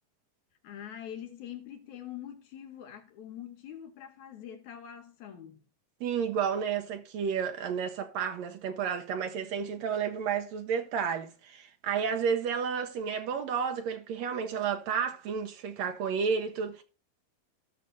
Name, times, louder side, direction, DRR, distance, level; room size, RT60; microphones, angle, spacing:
voice 1, 0.6-5.6, left 10 dB, 65° left, 2.1 m, -44 dB
voice 2, 6.0-16.8, right 7 dB, 85° right, 1.5 m, -31 dB
17.5 x 6.2 x 2.7 m
omnidirectional pair, 4.1 m